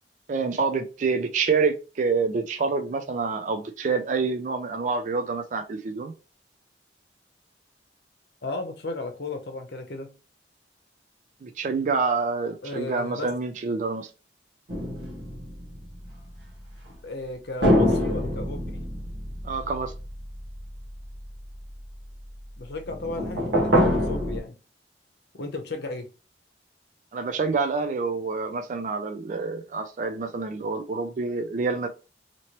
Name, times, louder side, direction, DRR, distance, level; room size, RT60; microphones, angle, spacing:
voice 1, 0.3-6.1 11.4-14.1 19.4-19.9 27.1-31.9, right 4 dB, 45° right, 0.4 m, -27 dB
voice 2, 8.4-10.1 12.6-13.3 16.9-18.8 22.6-24.5 25.4-26.1, left 2 dB, 65° left, 0.7 m, -34 dB
sound 1, 14.7-16.4 17.6-21.8 22.9-24.4, equal, 75° right, 1.1 m, -26 dB
2.9 x 2.8 x 2.9 m
head